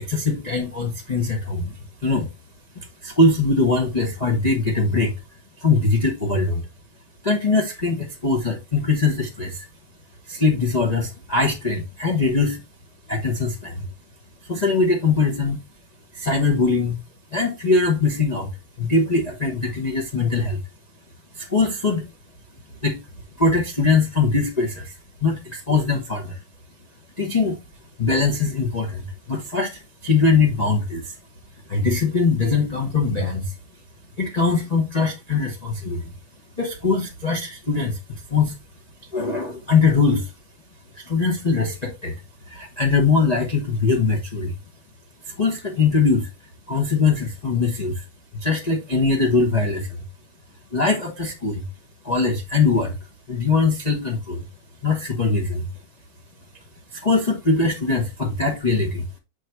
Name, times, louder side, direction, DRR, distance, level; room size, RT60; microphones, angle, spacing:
voice 1, 0.0-1.7 2.0-2.3 3.0-5.1 5.6-6.6 7.2-9.7 10.3-12.6 13.1-13.9 14.5-15.6 16.1-17.0 17.3-18.5 18.8-20.6 21.3-22.0 22.8-23.0 23.4-24.9 25.2-26.4 27.2-27.6 28.0-31.1 31.7-33.5 34.2-36.1 36.6-38.5 39.1-40.3 40.9-42.1 42.5-44.5 45.3-46.3 46.7-48.0 48.3-50.0 50.7-51.6 52.0-52.9 53.3-54.4 54.8-55.7 56.9-59.0, left 4 dB, 35° left, 0.6 m, -21 dB
6.7 x 3.3 x 4.5 m
omnidirectional pair, 2.4 m